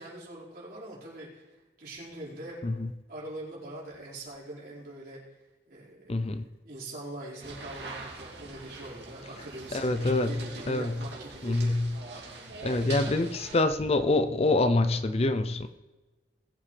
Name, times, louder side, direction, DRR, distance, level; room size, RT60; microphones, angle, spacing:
voice 1, 0.0-2.6 3.1-5.2 5.7-11.8, right 1 dB, 55° right, 4.8 m, -43 dB
voice 2, 6.1-6.4 9.7-10.4 10.7-10.9 11.4-11.9 12.6-15.8, left 2 dB, 35° left, 0.5 m, -26 dB
sound 1, 7.4-13.6, right 3 dB, 70° right, 2.7 m, -43 dB
20.0 x 8.5 x 3.3 m
head